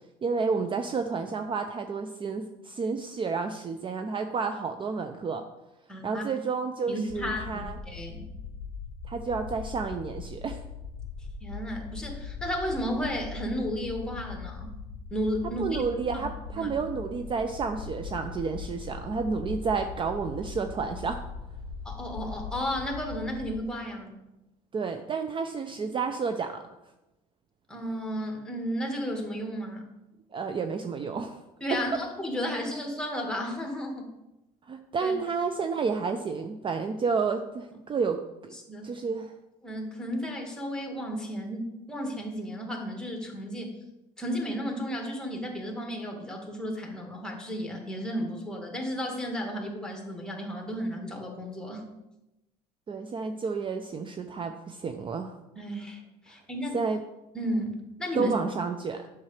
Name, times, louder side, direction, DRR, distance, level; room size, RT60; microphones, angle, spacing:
voice 1, 0.2-5.4 6.0-7.8 9.1-10.6 15.6-21.2 24.7-26.6 30.3-31.4 31.7-31.8 34.7-38.6 38.8-39.3 52.9-55.4 56.7-57.0 58.2-59.1, right 5 dB, 30° right, 7 dB, 0.5 m, -30 dB
voice 2, 5.9-6.2 6.9-8.3 11.4-14.8 15.1-15.8 16.1-16.3 16.6-16.7 21.9-24.2 27.7-29.8 31.6-34.1 35.0-35.1 38.7-38.9 39.6-43.7 44.2-51.8 55.6-56.8 57.3-58.3, equal, 5° left, 2 dB, 1.8 m, -33 dB
sound 1, 7.1-23.6, left 5 dB, 85° left, 0.5 m, -40 dB
7.2 x 6.0 x 3.2 m, 0.94 s
supercardioid pair, 85°, 16 cm